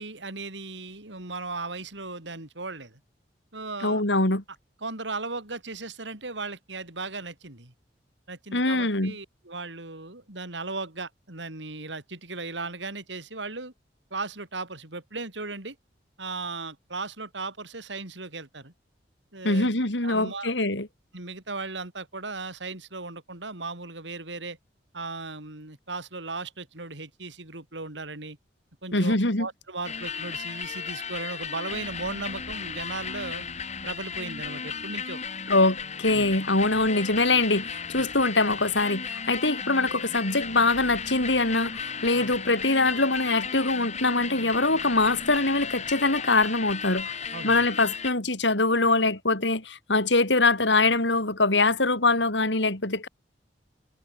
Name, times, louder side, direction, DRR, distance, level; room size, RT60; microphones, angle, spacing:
voice 1, 0.0-3.0 3.5-4.0 4.8-7.7 8.3-13.7 14.1-15.8 16.2-18.7 19.3-19.7 20.0-20.5 21.1-24.6 24.9-28.4 28.8-33.5 33.8-35.2 36.1-36.3 38.0-38.1 42.1-42.3 47.3-47.6, right 3 dB, 85° right, 4.6 m, -36 dB
voice 2, 3.8-4.4 8.5-9.1 19.4-20.9 28.9-29.5 35.5-53.1, left 2 dB, 85° left, 5.0 m, -23 dB
sound 1, 29.8-48.1, left 6 dB, 40° left, 6.2 m, -35 dB
head